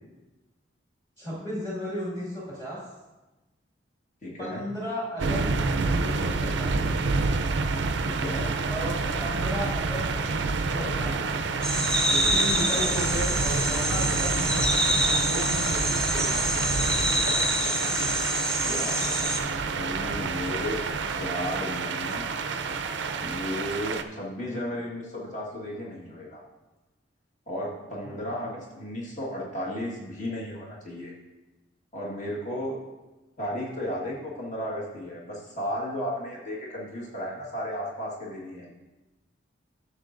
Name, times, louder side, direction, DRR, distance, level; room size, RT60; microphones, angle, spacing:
voice 1, 1.2-2.8 4.4-5.5 5.8-6.9 8.6-11.2 12.1-14.6 15.1-16.6 28.0-28.2, equal, 25° left, -10 dB, 2.1 m, -34 dB
voice 2, 4.2-4.6 8.0-8.6 12.6-12.9 18.6-19.1 19.7-22.3 23.2-26.4 27.5-31.1 31.9-32.8 33.4-38.7, left 1 dB, 40° left, -4 dB, 1.5 m, -34 dB
sound 1, 5.2-24.0, right 4 dB, 70° right, 0.4 m, -28 dB
sound 2, 11.6-19.4, right 1 dB, 5° left, 0.4 m, -26 dB
11.5 x 6.9 x 2.5 m, 1.1 s
head